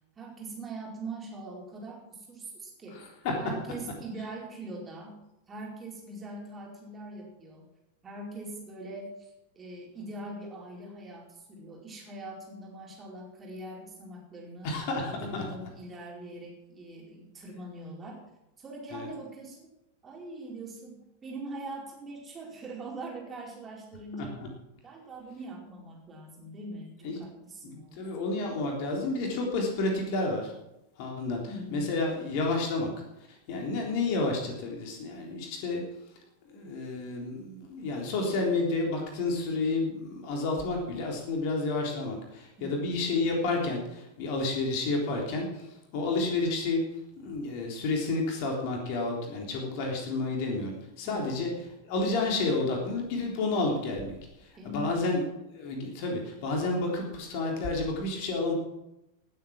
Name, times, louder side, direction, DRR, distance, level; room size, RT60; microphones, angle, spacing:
voice 1, 0.2-3.0 3.4-5.2 5.5-7.7 8.0-14.7 15.1-18.2 18.6-19.7 20.0-24.4 24.8-28.2 31.5-31.9 42.6-43.0 51.0-51.5 54.5-55.0, right 2 dB, 20° right, -2 dB, 4.7 m, -42 dB
voice 2, 2.9-3.4 14.6-15.4 18.9-19.1 27.0-27.2 27.6-30.5 31.0-32.9 33.3-35.8 36.5-46.9 47.2-51.5 51.8-58.5, left 3 dB, 45° left, 1 dB, 3.6 m, -30 dB
18.5 x 8.4 x 6.2 m, 0.91 s
figure-of-eight pair, 90°, 0 cm